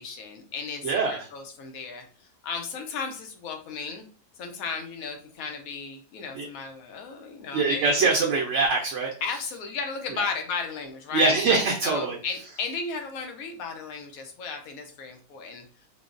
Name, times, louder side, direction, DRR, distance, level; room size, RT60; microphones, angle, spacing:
voice 1, 0.0-2.0 2.4-4.1 4.4-8.1 9.2-11.4 11.8-15.6, left 5 dB, 75° left, 4 dB, 1.0 m, -34 dB
voice 2, 0.8-1.3 6.3-6.5 7.5-9.1 10.1-10.3 11.1-12.2, right 3 dB, 65° right, 0 dB, 0.8 m, -23 dB
3.6 x 2.0 x 2.4 m, 0.40 s
omnidirectional pair, 1.6 m